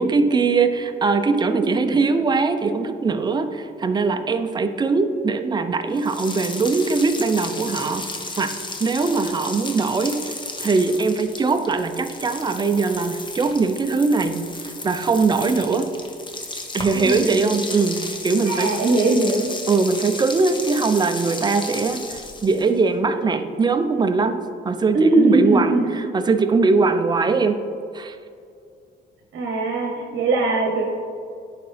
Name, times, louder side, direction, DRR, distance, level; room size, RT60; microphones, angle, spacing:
voice 1, 0.0-8.0 8.4-8.5 8.8-15.9 16.7-18.7 19.7-24.4 24.6-25.8 26.1-27.6 27.9-28.2, right 4 dB, 20° right, 8 dB, 0.5 m, -21 dB
voice 2, 1.5-2.0 16.9-17.6 18.4-19.5 24.9-25.8 29.3-30.8, right 2 dB, 65° right, 1 dB, 0.9 m, -20 dB
sound 1, 6.0-22.8, left 3 dB, 25° left, 0.8 m, -34 dB
10.5 x 4.0 x 3.3 m, 2.4 s
cardioid pair, 90°, 20 cm